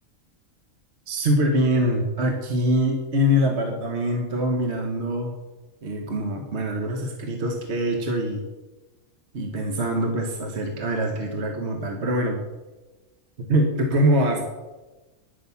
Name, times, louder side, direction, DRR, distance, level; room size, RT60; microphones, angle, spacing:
voice 1, 1.1-5.4 5.8-8.4 9.3-12.4 13.4-14.5, equal, 55° right, 3 dB, 1.6 m, -24 dB
10.0 x 9.9 x 7.0 m, 1.1 s
omnidirectional pair, 1.4 m